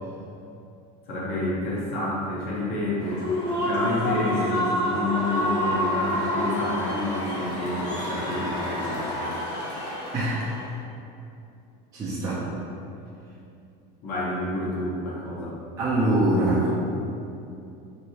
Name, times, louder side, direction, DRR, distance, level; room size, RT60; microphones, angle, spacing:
voice 1, 1.1-3.3 3.7-9.1 14.0-15.6, left 2 dB, 50° left, -6 dB, 0.7 m, -29 dB
Human voice / Cheering / Applause, 3.0-10.7, equal, 80° left, 0.9 m, -28 dB
voice 2, 11.9-12.5 15.8-16.7, right 1 dB, 20° right, -9 dB, 0.4 m, -23 dB
3.1 x 2.6 x 2.7 m, 2.7 s
cardioid pair, 160°, 20 cm